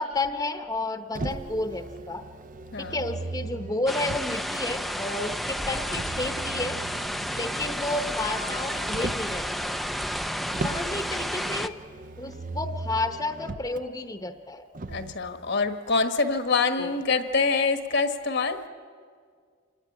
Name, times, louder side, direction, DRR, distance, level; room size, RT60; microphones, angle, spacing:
voice 1, 0.0-2.2 2.8-6.8 7.3-9.8 10.6-11.7 12.2-14.7 16.8-17.0, left 2 dB, 20° left, 7 dB, 1.0 m, -31 dB
Motor vehicle (road), 1.2-4.6 5.9-9.4 10.5-13.8 14.7-15.2, right 3 dB, 40° right, 0.6 m, -38 dB
sound 1, 3.9-11.7, equal, ahead, 0.6 m, -31 dB
voice 2, 14.9-18.6, left 4 dB, 55° left, 8 dB, 1.4 m, -25 dB
27.5 x 18.5 x 9.9 m, 2.1 s
head